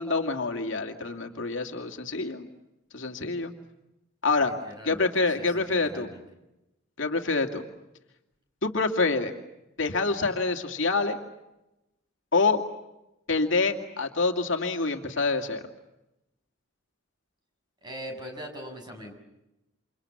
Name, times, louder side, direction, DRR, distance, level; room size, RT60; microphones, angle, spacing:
voice 1, 0.0-2.5 2.9-3.5 4.2-4.5 4.8-6.1 7.0-7.6 8.6-9.3 9.8-11.2 12.3-12.6 13.3-15.6, left 3 dB, 65° left, 4 dB, 2.5 m, -26 dB
voice 2, 4.4-6.2 17.8-19.1, equal, 20° right, 3 dB, 7.2 m, -41 dB
30.0 x 27.5 x 7.1 m, 0.92 s
head